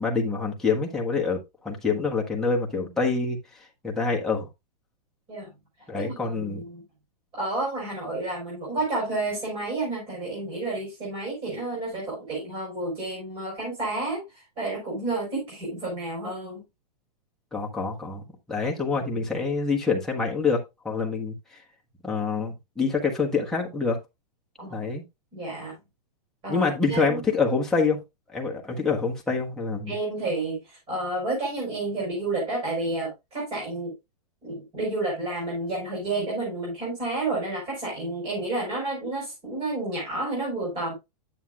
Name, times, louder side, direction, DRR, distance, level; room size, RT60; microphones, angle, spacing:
voice 1, 0.0-1.4 1.6-3.4 3.8-4.5 5.9-6.6 17.5-18.2 18.5-20.6 20.8-21.3 22.0-24.0 24.7-25.0 26.5-28.0 28.3-29.9, left 4 dB, ahead, 1.2 m, -26 dB
voice 2, 6.0-6.8 7.3-16.6 24.6-24.8 25.3-25.7 26.4-27.2 29.9-33.9 34.4-40.9, right 2 dB, 25° right, 4.6 m, -30 dB
9.3 x 7.3 x 2.4 m
supercardioid pair, 160°, 21 cm